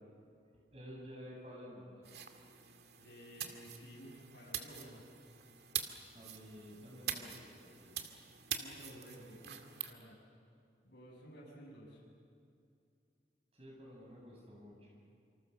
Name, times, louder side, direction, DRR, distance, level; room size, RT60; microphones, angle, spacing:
voice 1, 0.5-2.1 6.1-8.0 13.5-14.9, equal, 35° right, -2 dB, 7.8 m, -52 dB
sound 1, 2.0-9.9, right 9 dB, 70° right, 2.1 m, -45 dB
voice 2, 3.0-5.1 8.5-10.2 10.8-12.0, equal, 80° left, -4 dB, 7.4 m, -54 dB
27.5 x 26.0 x 7.0 m, 2.5 s
head